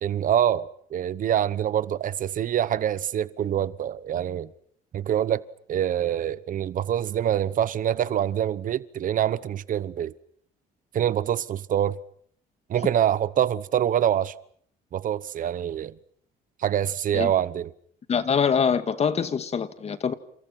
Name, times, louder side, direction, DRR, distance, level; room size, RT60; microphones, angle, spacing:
voice 1, 0.0-4.5 4.9-5.4 5.7-10.1 10.9-12.0 12.7-14.3 14.9-15.9 16.6-17.7, right 10 dB, 50° right, 1.1 m, -25 dB
voice 2, 18.1-20.1, left 6 dB, 40° left, 2.1 m, -24 dB
30.0 x 28.5 x 6.0 m
cardioid pair, 110°, 17 cm